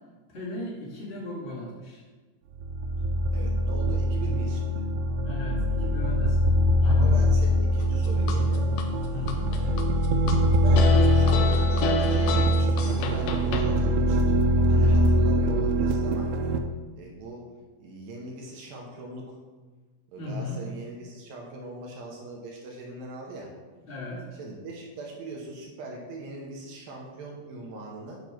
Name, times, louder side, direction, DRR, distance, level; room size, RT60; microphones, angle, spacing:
voice 1, 0.3-2.0 5.2-6.5 6.8-7.1 9.1-9.5 14.7-14.9 20.2-20.6 23.8-24.2, left 2 dB, 40° left, -7 dB, 0.9 m, -37 dB
sound 1, 2.5-16.6, equal, 85° right, 2.1 m, -23 dB
voice 2, 3.3-4.8 6.8-8.7 9.5-9.7 10.6-14.3 14.7-16.3 16.9-17.5 17.8-19.4 20.1-23.5 24.3-28.2, right 2 dB, 70° right, -1 dB, 2.5 m, -40 dB
sound 2, 7.8-8.9 9.3-10.4 10.8-13.7, left 2 dB, 80° left, 2.5 m, -29 dB
9.3 x 3.2 x 5.9 m, 1.3 s
omnidirectional pair, 4.8 m